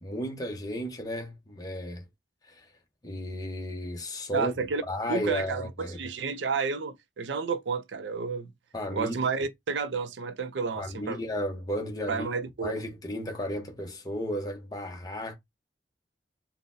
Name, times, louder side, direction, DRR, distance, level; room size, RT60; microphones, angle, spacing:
voice 1, 0.0-2.0 2.5-2.7 3.0-4.5 4.9-6.0 8.7-9.2 10.7-12.3 12.6-15.4, equal, 20° left, 0.7 m, -33 dB
voice 2, 4.3-4.8 5.1-8.5 8.9-11.2 12.1-12.7, right 5 dB, 85° right, 0.5 m, -31 dB
3.8 x 2.1 x 2.6 m
head